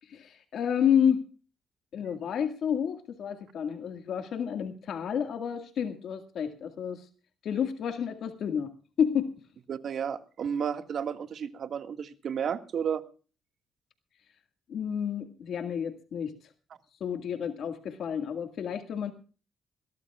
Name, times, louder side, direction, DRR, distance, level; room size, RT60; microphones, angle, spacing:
voice 1, 0.0-1.2 1.9-7.1 7.4-8.7 9.0-9.3 14.7-16.4 17.0-19.1, left 8 dB, 70° left, 6 dB, 1.9 m, -30 dB
voice 2, 9.7-13.0, right 7 dB, 60° right, 8 dB, 1.9 m, -32 dB
22.0 x 17.5 x 2.4 m, 0.37 s
cardioid pair, 90°, 0 cm